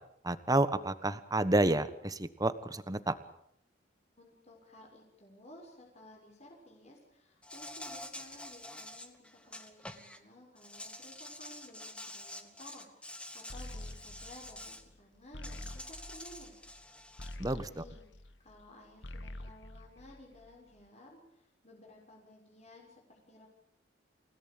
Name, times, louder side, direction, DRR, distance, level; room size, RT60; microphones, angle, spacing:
voice 1, 0.2-3.1 17.4-17.8, right 2 dB, 20° right, 13 dB, 1.4 m, -30 dB
voice 2, 4.2-16.6 17.4-23.5, left 1 dB, 35° left, -1 dB, 6.6 m, -56 dB
Insect, 7.4-10.2 10.6-14.8 15.4-17.4, left 1 dB, 5° left, 2.0 m, -47 dB
sound 1, 13.5-18.7 18.9-20.7, left 1 dB, 75° left, 1.6 m, -47 dB
29.5 x 17.5 x 9.0 m, 0.75 s
head